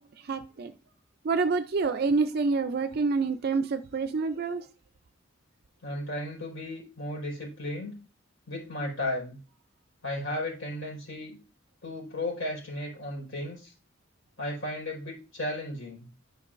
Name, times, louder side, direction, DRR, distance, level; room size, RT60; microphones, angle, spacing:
voice 1, 0.2-0.7 1.2-4.6, right 4 dB, 50° right, 0.4 m, -27 dB
voice 2, 5.8-7.9 8.5-9.4 10.0-11.4 11.8-13.7 14.4-16.1, left 1 dB, 70° left, 4.3 m, -34 dB
11.0 x 5.1 x 2.5 m
head